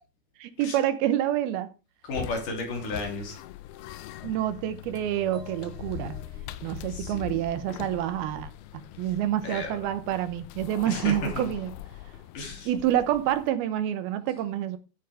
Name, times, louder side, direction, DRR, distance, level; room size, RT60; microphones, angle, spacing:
voice 1, 0.4-1.7 4.2-6.2 6.6-11.7 12.7-14.8, right 12 dB, 80° right, 2.7 m, -28 dB
voice 2, 2.0-3.4 6.9-7.4 9.4-9.8 10.9-11.4 12.3-12.7, left 2 dB, 55° left, 4.3 m, -34 dB
sound 1, 2.1-13.5, left 13 dB, 85° left, 2.6 m, -42 dB
sound 2, 5.3-9.0, left 1 dB, 20° right, 2.6 m, -51 dB
14.0 x 9.2 x 3.4 m
omnidirectional pair, 4.6 m